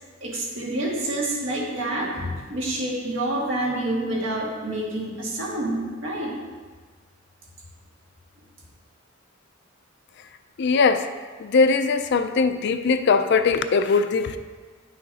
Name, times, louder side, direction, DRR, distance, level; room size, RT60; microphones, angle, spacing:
voice 1, 0.2-6.3, right 1 dB, 70° right, -4 dB, 2.0 m, -28 dB
voice 2, 10.6-11.1 11.4-14.4, left 4 dB, 60° left, 10 dB, 0.4 m, -20 dB
9.9 x 6.3 x 2.8 m, 1.4 s
head